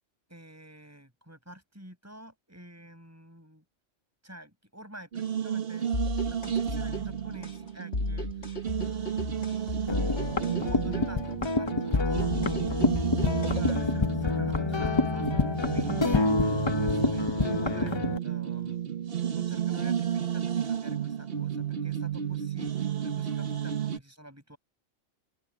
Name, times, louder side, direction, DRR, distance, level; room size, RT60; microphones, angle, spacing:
voice 1, 0.3-3.6 4.2-10.0 10.5-12.3 12.7-24.6, right 1 dB, 10° right, 7.4 m, -49 dB
sound 1, 5.1-24.0, right 9 dB, 50° right, 1.4 m, -32 dB
sound 2, 5.9-13.9, left 2 dB, 60° left, 2.4 m, -35 dB
sound 3, 9.9-18.2, left 3 dB, 25° left, 0.7 m, -28 dB
open air
omnidirectional pair, 1.3 m